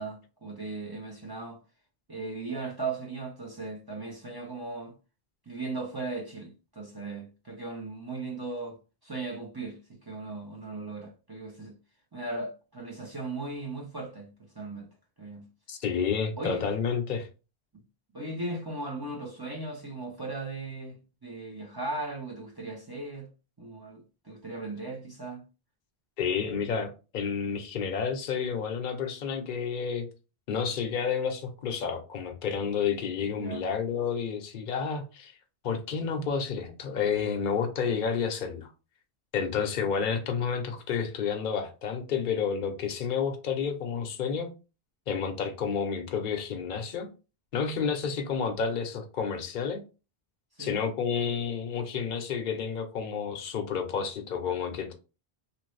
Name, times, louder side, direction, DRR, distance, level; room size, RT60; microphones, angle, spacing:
voice 1, 0.0-1.6 2.1-4.9 5.5-11.8 12.1-14.9 15.2-15.5 16.4-16.6 18.1-21.0 21.2-23.3 23.6-25.4 33.4-33.7 50.6-50.7, right 3 dB, 25° right, 0.7 m, -37 dB
voice 2, 15.7-17.3 26.2-30.1 30.5-35.3 35.6-38.7 39.3-44.5 45.1-47.1 47.5-49.8 50.6-54.9, left 6 dB, 55° left, 0.8 m, -30 dB
3.0 x 2.6 x 3.1 m
omnidirectional pair, 1.0 m